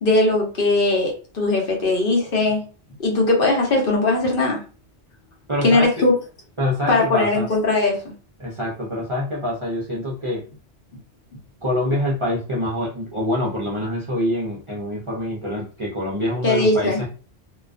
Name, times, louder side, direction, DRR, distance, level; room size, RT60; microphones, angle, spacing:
voice 1, 0.0-2.6 3.0-4.6 5.6-6.1 6.9-8.0 16.4-17.0, left 2 dB, 55° left, -1 dB, 0.9 m, -19 dB
voice 2, 5.5-5.9 6.6-7.5 8.4-10.4 11.6-17.1, left 1 dB, 40° right, -4 dB, 0.4 m, -25 dB
2.3 x 2.3 x 2.3 m, 0.37 s
omnidirectional pair, 1.2 m